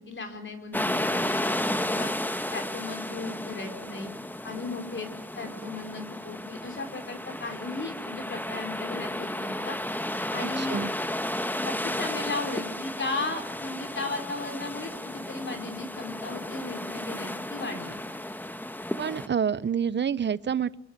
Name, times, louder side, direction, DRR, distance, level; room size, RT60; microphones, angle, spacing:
voice 1, 0.0-2.1 2.5-4.1 4.4-5.1 5.4-9.8 10.3-10.8 11.6-18.0, left 3 dB, 40° left, 5 dB, 5.1 m, -36 dB
sound 1, 0.7-19.3, left 1 dB, 5° left, 1.7 m, -33 dB
voice 2, 10.6-10.9 19.0-20.8, right 7 dB, 35° right, 18 dB, 1.0 m, -27 dB
27.5 x 22.5 x 8.3 m, 0.70 s
cardioid pair, 90°, 30 cm